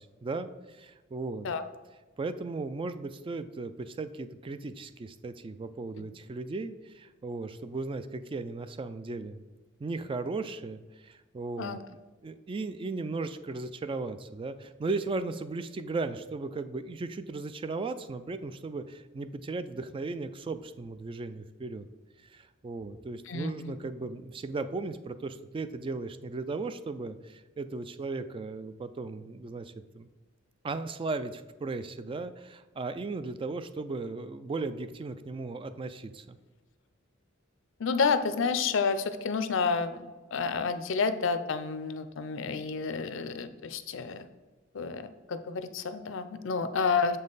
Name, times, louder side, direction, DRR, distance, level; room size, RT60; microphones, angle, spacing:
voice 1, 0.0-1.5 2.2-9.4 9.8-11.8 12.2-21.9 22.2-30.1 30.6-36.4, right 3 dB, 25° right, 12 dB, 0.3 m, -36 dB
voice 2, 23.3-23.7 37.8-40.0 40.3-44.3 44.7-47.2, left 5 dB, 70° left, 11 dB, 0.5 m, -30 dB
7.2 x 5.4 x 3.9 m, 1.2 s
head